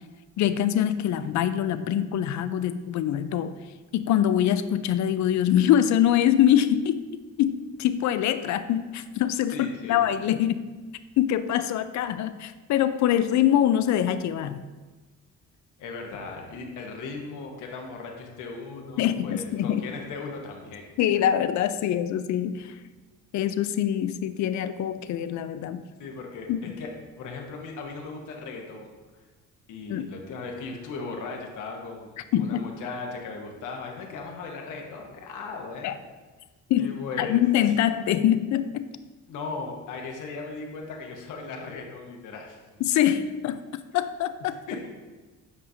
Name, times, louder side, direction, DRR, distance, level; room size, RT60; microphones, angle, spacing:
voice 1, 0.4-3.5 3.9-7.0 7.4-10.7 11.2-14.6 19.0-19.8 21.0-22.7 23.3-25.8 26.5-26.8 29.9-30.1 32.3-32.6 35.8-35.9 36.7-38.9 42.8-44.6, left 11 dB, 70° left, 12 dB, 0.5 m, -24 dB
voice 2, 9.5-10.3 15.8-20.9 26.0-26.5 26.8-26.9 27.2-28.9 29.7-36.0 36.8-37.4 39.3-42.6 44.7-44.9, left 4 dB, 90° left, 1 dB, 1.1 m, -37 dB
8.5 x 4.8 x 2.7 m, 1.3 s
cardioid pair, 90°, 30 cm